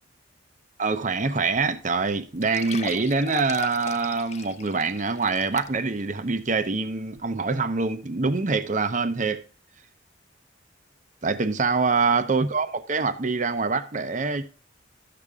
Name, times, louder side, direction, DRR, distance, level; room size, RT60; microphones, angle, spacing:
voice 1, 0.8-9.4 11.2-14.4, right 4 dB, 40° right, 0.7 m, -25 dB
sound 1, 1.5-1.6 1.9-2.0 2.4-6.0 6.5-6.6 7.2-7.3, left 6 dB, 35° left, 0.4 m, -38 dB
12.5 x 6.8 x 3.6 m
head